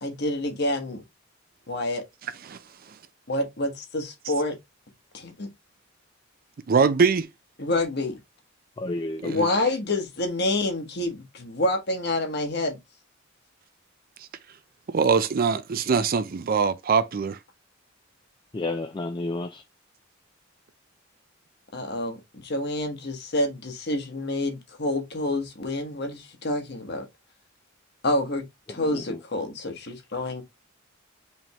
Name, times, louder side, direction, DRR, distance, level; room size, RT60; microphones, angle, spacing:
voice 1, 0.0-1.0 1.7-2.0 3.3-4.5 5.1-5.5 7.6-8.2 9.2-12.8 21.7-27.0 28.0-30.4, left 1 dB, 55° left, 1.4 m, -28 dB
voice 2, 6.7-7.3 9.2-9.4 14.9-17.4, right 5 dB, 45° right, 0.5 m, -22 dB
voice 3, 8.8-9.5 18.5-19.6 28.9-29.2, left 2 dB, 25° left, 0.4 m, -31 dB
5.1 x 3.5 x 2.9 m
head